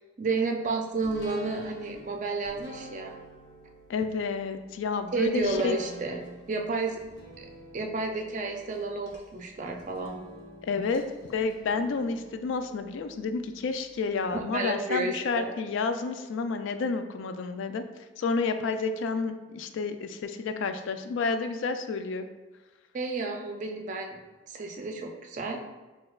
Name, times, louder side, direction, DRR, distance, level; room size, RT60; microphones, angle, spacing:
voice 1, 0.2-3.1 5.1-6.2 6.5-7.0 7.4-7.5 7.7-10.2 14.3-15.5 22.9-24.2 24.5-25.6, right 3 dB, 40° right, 3 dB, 0.4 m, -31 dB
sound 1, 1.0-14.0 14.4-14.5, right 2 dB, 55° left, 0.8 m, -48 dB
voice 2, 3.9-5.8 10.6-11.0 11.3-17.8 18.2-22.3, left 4 dB, 75° left, 8 dB, 0.3 m, -30 dB
6.1 x 2.3 x 2.3 m, 1.2 s
head